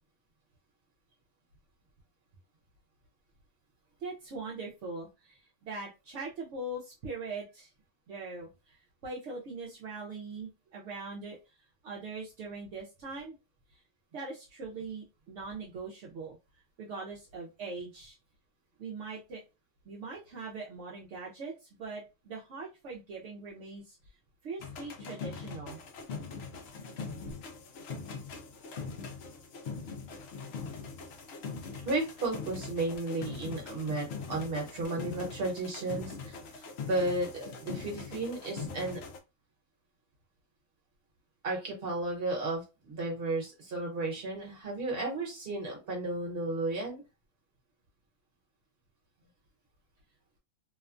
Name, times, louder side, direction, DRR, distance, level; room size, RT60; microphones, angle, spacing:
voice 1, 4.0-7.7 8.1-11.4 11.8-13.3 13.7-13.8 14.1-16.4 16.8-18.2 18.8-19.4 19.9-24.0 24.4-25.8, right 3 dB, 70° right, -3 dB, 0.9 m, -41 dB
sound 1, 24.6-39.2, left 5 dB, 65° left, 0.7 m, -42 dB
voice 2, 31.8-39.0 41.4-47.0, right 2 dB, 50° right, 0 dB, 1.2 m, -34 dB
2.9 x 2.2 x 2.4 m, 0.27 s
omnidirectional pair, 1.3 m